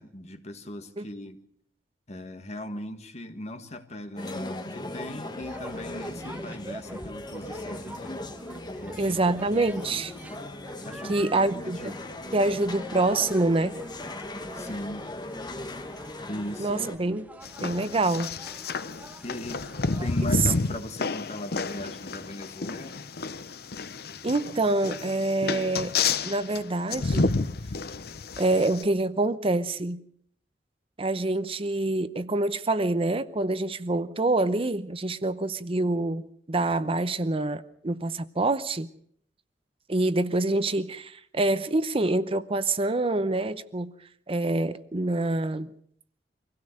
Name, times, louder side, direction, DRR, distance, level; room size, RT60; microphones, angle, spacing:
voice 1, 0.0-1.4 2.1-8.2 8.8-9.2 9.5-10.0 10.8-11.3 11.5-12.1 14.5-15.1 16.3-16.8 19.2-19.7 20.0-23.1, left 1 dB, 40° left, 1.7 m, -39 dB
sound 1, 4.2-17.0, left 2 dB, 25° left, 1.4 m, -39 dB
sound 2, 5.4-20.4, right 1 dB, 10° right, 1.2 m, -45 dB
voice 2, 9.0-10.1 11.1-11.9 12.3-13.8 16.6-17.3 17.6-18.3 24.2-25.9 26.2-27.4 28.4-30.0 31.0-38.9 39.9-43.9 44.3-45.7, right 2 dB, 35° right, 0.8 m, -26 dB
sound 3, 17.4-28.8, left 4 dB, 60° left, 0.8 m, -30 dB
25.0 x 16.5 x 6.5 m
head